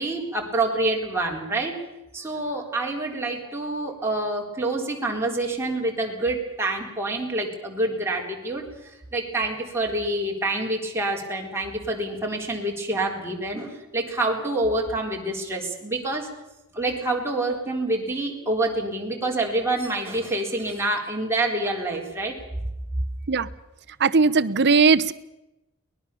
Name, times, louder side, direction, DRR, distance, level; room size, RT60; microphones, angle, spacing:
voice 1, 0.0-1.7 2.1-16.3 16.7-22.4, right 2 dB, 10° right, -1 dB, 4.1 m, -27 dB
voice 2, 24.0-25.1, right 4 dB, 50° right, 14 dB, 0.9 m, -18 dB
23.5 x 20.0 x 7.0 m, 0.96 s
head